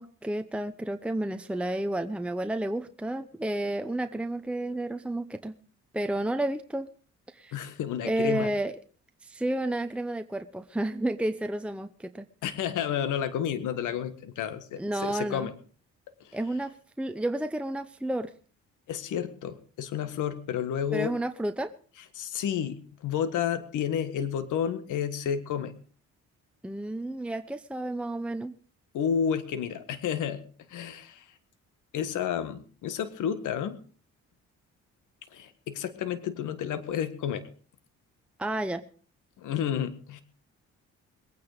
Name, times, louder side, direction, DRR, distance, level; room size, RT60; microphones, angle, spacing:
voice 1, 0.0-5.6 5.9-6.9 7.3-7.6 8.0-8.7 9.2-12.3 14.8-15.5 16.3-16.7 17.0-18.3 20.9-21.7 26.6-28.5 38.4-38.8, right 1 dB, 5° right, 8 dB, 0.8 m, -31 dB
voice 2, 7.5-8.5 12.4-15.5 16.2-16.4 18.9-21.2 22.1-25.7 28.9-30.4 30.7-31.3 31.9-33.8 35.3-37.4 39.4-40.2, left 8 dB, 80° left, 11 dB, 1.7 m, -31 dB
21.5 x 9.4 x 5.0 m, 0.41 s
cardioid pair, 90°, 30 cm